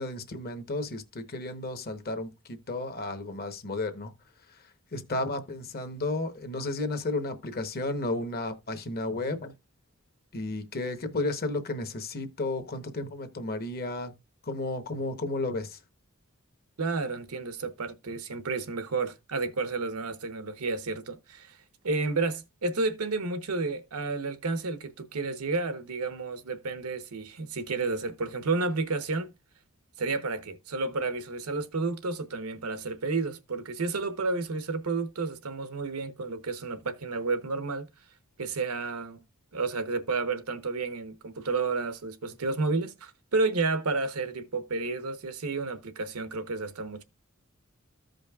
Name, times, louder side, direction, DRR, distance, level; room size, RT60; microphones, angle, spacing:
voice 1, 0.0-4.1 4.5-9.5 10.3-14.2 14.4-15.8, left 2 dB, 45° left, 1.0 m, -33 dB
voice 2, 16.8-21.6 21.8-29.3 30.0-37.9 38.4-39.2 39.5-47.0, right 3 dB, 85° right, 0.9 m, -31 dB
14.5 x 5.1 x 2.3 m
head